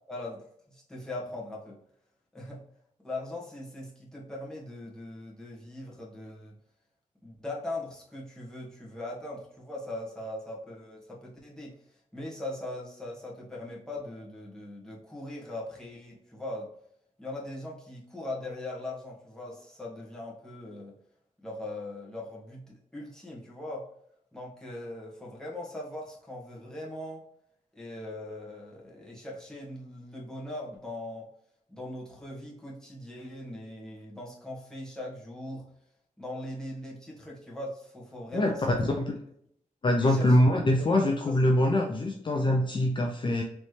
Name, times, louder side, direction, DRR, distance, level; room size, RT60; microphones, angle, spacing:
voice 1, 0.1-1.8 2.3-2.6 3.0-6.6 7.2-11.8 12.1-16.7 17.2-20.9 21.4-23.9 24.3-27.2 27.7-31.3 31.7-35.7 36.2-38.9 40.0-40.4 40.7-41.0, left 1 dB, 5° left, -5 dB, 1.4 m, -40 dB
voice 2, 39.8-43.4, left 1 dB, 35° left, 2 dB, 0.5 m, -23 dB
4.1 x 3.1 x 3.2 m, 0.71 s
wide cardioid pair, 105°, 14 cm